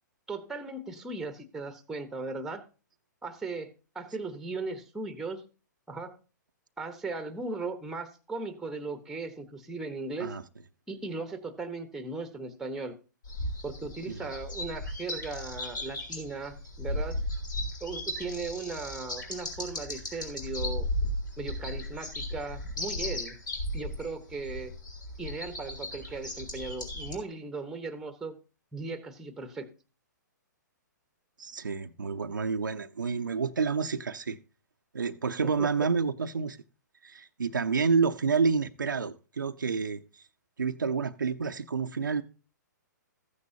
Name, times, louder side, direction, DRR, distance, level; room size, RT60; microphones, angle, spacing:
voice 1, 0.3-2.7 3.2-5.4 5.9-6.2 6.8-10.3 10.9-13.0 13.6-17.2 17.8-20.9 21.4-23.4 23.7-24.7 25.2-28.4 28.7-29.7 35.6-35.9, right 3 dB, 5° right, 1.0 m, -37 dB
sound 1, 13.2-27.1, left 1 dB, 75° left, 3.8 m, -36 dB
voice 2, 31.4-34.4 34.9-36.6 37.0-40.2 40.6-42.2, right 5 dB, 85° right, 0.6 m, -29 dB
14.5 x 9.6 x 2.7 m
figure-of-eight pair, 125°, 10 cm